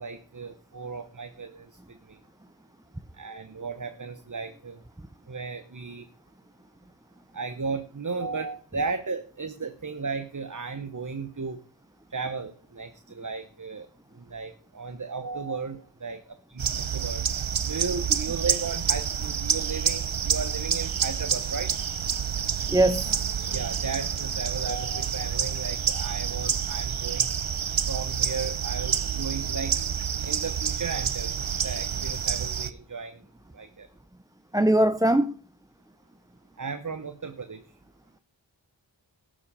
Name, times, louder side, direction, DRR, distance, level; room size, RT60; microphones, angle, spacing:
voice 1, 0.0-2.2 3.1-4.8 5.3-6.1 7.3-11.6 12.1-17.2 17.6-21.7 23.5-27.3 27.9-29.9 30.2-33.2 33.5-33.9 36.6-37.6, right 4 dB, 40° right, 9 dB, 1.0 m, -35 dB
sound 1, 16.6-32.7, right 7 dB, 80° right, 0.8 m, -28 dB
voice 2, 22.7-23.1 34.5-35.3, right 1 dB, 10° right, 10 dB, 0.6 m, -21 dB
12.5 x 7.5 x 4.9 m, 0.42 s
wide cardioid pair, 45°, 47 cm